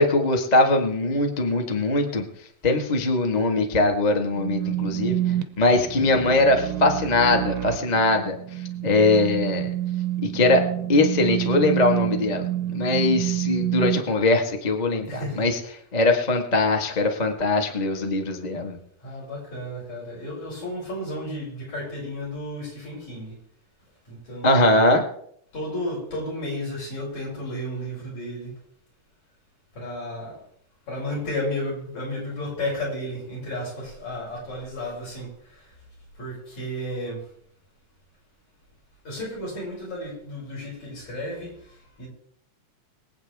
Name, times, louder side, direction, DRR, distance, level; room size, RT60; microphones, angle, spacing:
voice 1, 0.0-2.2 2.6-5.2 5.6-8.4 8.8-9.7 10.2-10.6 10.9-12.4 12.7-15.6 15.9-18.8 24.4-25.0, left 2 dB, 25° left, 0.9 m, -21 dB
sound 1, 4.3-14.0, right 13 dB, 75° right, 1.4 m, -28 dB
voice 2, 15.0-15.8 19.0-23.4 24.1-24.6 25.5-28.6 29.8-30.4 30.9-35.8 36.2-37.2 39.0-42.1, left 1 dB, 60° left, 7.5 m, -33 dB
24.0 x 8.7 x 3.6 m
omnidirectional pair, 3.6 m